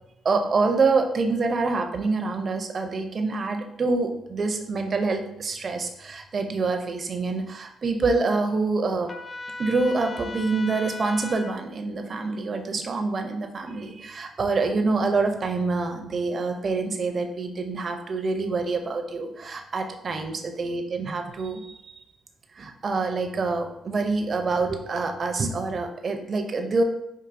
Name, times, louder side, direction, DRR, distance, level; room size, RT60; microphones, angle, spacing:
voice 1, 0.2-9.1 9.6-21.9 22.5-26.8, right 3 dB, 45° right, 5 dB, 0.5 m, -26 dB
Trumpet, 9.1-11.6, left 3 dB, 30° left, 0.4 m, -37 dB
4.7 x 2.6 x 2.5 m, 0.80 s
cardioid pair, 90°, 0 cm